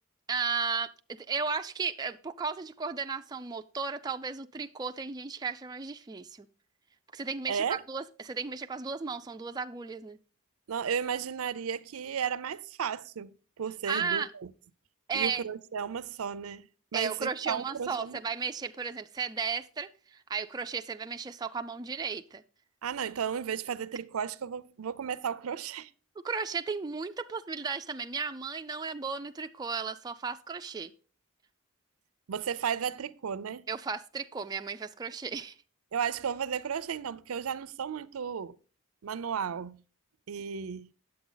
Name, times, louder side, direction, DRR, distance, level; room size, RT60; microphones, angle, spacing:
voice 1, 0.3-6.5 7.1-10.2 13.9-14.3 15.1-15.5 16.9-22.4 26.2-30.9 33.7-35.6, right 5 dB, 20° right, 0.3 m, -34 dB
voice 2, 7.5-7.8 10.7-14.2 15.1-16.7 16.9-18.2 22.8-25.9 32.3-33.6 35.9-38.5 39.0-39.8 40.3-40.9, right 7 dB, 75° right, 0.5 m, -34 dB
9.4 x 7.8 x 3.9 m
head